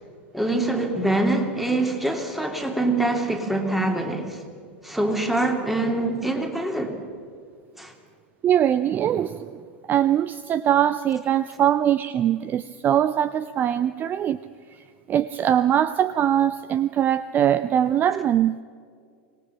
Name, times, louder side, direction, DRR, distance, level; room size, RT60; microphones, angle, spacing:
voice 1, 0.3-4.4 4.8-7.0 7.8-7.9, right 2 dB, 5° right, 2.9 m, -24 dB
voice 2, 8.4-9.6 9.9-14.4 15.1-18.6, right 10 dB, 30° right, 0.5 m, -22 dB
25.0 x 18.5 x 5.8 m
figure-of-eight pair, 85°, 6 cm